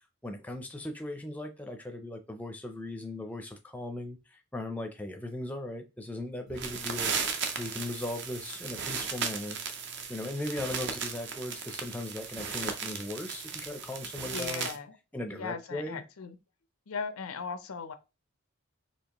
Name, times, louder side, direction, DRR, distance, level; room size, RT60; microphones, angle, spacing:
voice 1, 0.2-7.1 7.6-9.6 10.1-14.7 15.1-16.0, left 1 dB, 5° left, 0.5 m, -38 dB
sound 1, 6.5-14.8, right 6 dB, 55° right, 0.6 m, -36 dB
voice 2, 14.2-15.0 15.3-16.4 16.9-17.9, left 5 dB, 90° left, 0.6 m, -38 dB
4.4 x 2.8 x 2.9 m
head